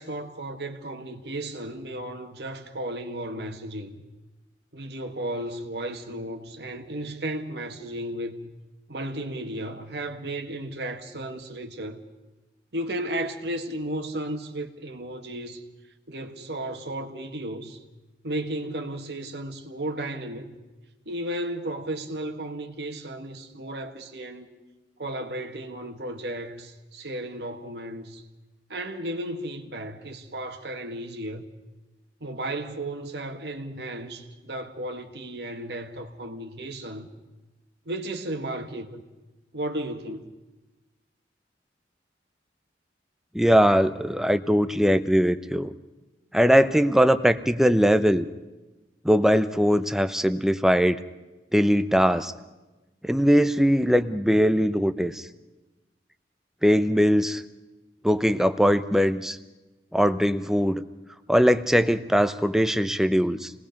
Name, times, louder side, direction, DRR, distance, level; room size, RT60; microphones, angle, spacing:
voice 1, 0.0-4.0 4.7-8.5 8.9-12.0 12.7-15.6 16.1-17.8 18.2-20.5 21.1-24.5 25.0-28.2 28.7-31.5 32.2-37.1 37.9-39.0 39.5-40.3, right 1 dB, 65° right, 1.8 m, -34 dB
voice 2, 43.3-45.7 46.3-48.3 49.0-51.0 51.5-52.3 53.0-55.3 56.6-57.4 58.0-59.4 59.9-60.8 61.3-63.5, equal, 5° right, 0.7 m, -21 dB
28.0 x 19.5 x 5.3 m
head